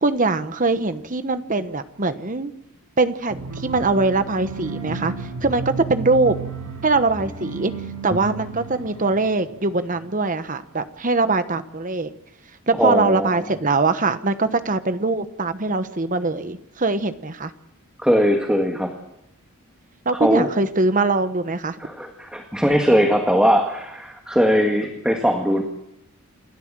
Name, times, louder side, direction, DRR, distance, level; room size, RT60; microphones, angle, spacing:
voice 1, 0.0-2.5 3.0-6.3 6.8-7.7 8.0-12.2 12.7-17.5 20.0-21.8, right 3 dB, 35° right, 10 dB, 1.1 m, -22 dB
sound 1, 3.3-10.1, right 4 dB, 85° right, 6.5 m, -33 dB
voice 2, 12.8-13.3 18.0-18.9 20.2-20.5 21.8-25.6, equal, 5° right, 3 dB, 1.7 m, -20 dB
28.5 x 13.0 x 7.6 m, 0.84 s
head